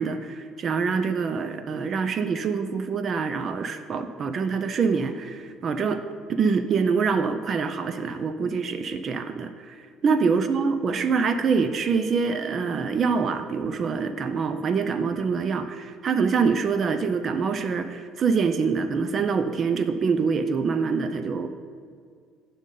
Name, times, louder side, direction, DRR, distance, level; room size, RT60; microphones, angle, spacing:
voice 1, 0.0-6.0 6.3-21.5, right 5 dB, 45° right, 10 dB, 0.4 m, -25 dB
9.0 x 5.3 x 3.8 m, 2.1 s
supercardioid pair, 95°, 0 cm